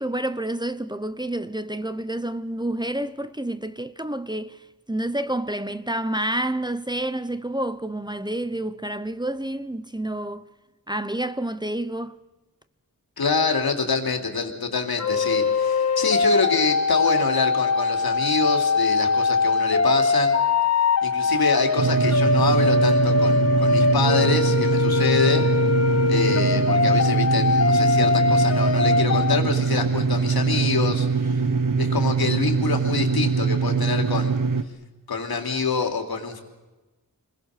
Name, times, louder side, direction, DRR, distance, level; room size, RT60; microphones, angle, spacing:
voice 1, 0.0-4.6 4.9-10.4 10.9-12.2, right 1 dB, 10° right, 0.9 m, -29 dB
voice 2, 13.2-20.4 21.0-25.5 26.1-31.4 31.8-34.3 35.1-36.4, left 4 dB, 85° left, 3.3 m, -26 dB
sound 1, 15.0-29.4, left 4 dB, 45° left, 1.4 m, -22 dB
sound 2, 21.8-34.6, right 5 dB, 60° right, 1.3 m, -23 dB
29.5 x 21.5 x 6.7 m
wide cardioid pair, 100°, 36 cm